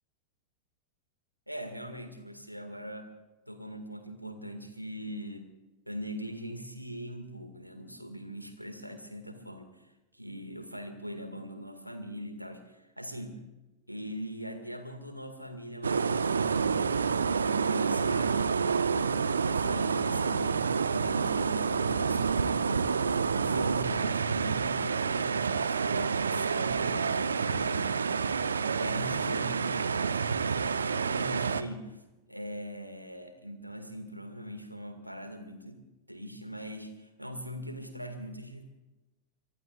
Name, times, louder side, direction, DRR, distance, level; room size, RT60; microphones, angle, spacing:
voice 1, 1.5-3.1 3.5-5.5 5.9-13.4 13.9-22.9 23.3-27.9 28.7-29.9 30.5-32.0 32.3-35.8 36.1-38.6, equal, 90° right, 7 dB, 2.0 m, -41 dB
sound 1, 15.8-31.6, right 5 dB, 70° right, 0.7 m, -28 dB
24.0 x 24.0 x 2.5 m, 1.1 s
figure-of-eight pair, 90°, 0 cm